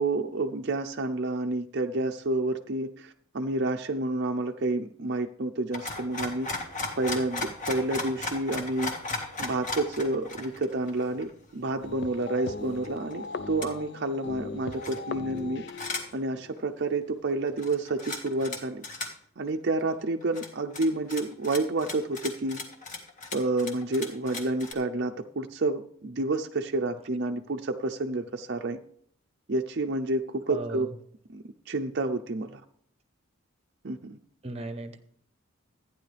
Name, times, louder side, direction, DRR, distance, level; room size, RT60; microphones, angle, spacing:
voice 1, 0.0-6.5 7.0-8.9 9.4-18.8 19.4-22.6 23.3-28.8 29.5-30.9 31.3-32.6 33.8-34.2, right 2 dB, 50° right, 4 dB, 0.6 m, -29 dB
sound 1, 5.7-11.3 11.8-11.9 12.2-13.1 13.6-13.7 14.7-15.4 15.7-16.2 16.5-16.6 17.5-18.6 18.8-19.1 19.8-19.9 20.2-24.7, left 2 dB, 35° left, 1.8 m, -36 dB
sound 2, 11.8-17.7, left 3 dB, 50° left, 0.5 m, -40 dB
voice 2, 30.5-30.9 34.4-35.0, right 2 dB, 30° right, 10 dB, 0.9 m, -37 dB
14.0 x 9.7 x 3.4 m, 0.64 s
head